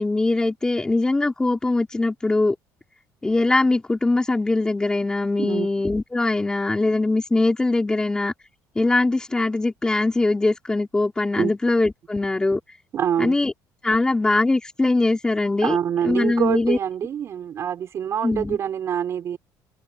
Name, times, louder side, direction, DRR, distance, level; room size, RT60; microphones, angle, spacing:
voice 1, 0.0-2.5 3.2-8.3 8.8-12.6 13.2-13.5 13.8-15.8 16.0-16.8 18.2-18.6, left 2 dB, 10° left, 4.1 m, -21 dB
voice 2, 12.9-13.4 15.6-19.4, right 9 dB, 40° right, 5.4 m, -25 dB
cardioid pair, 155°, 7 cm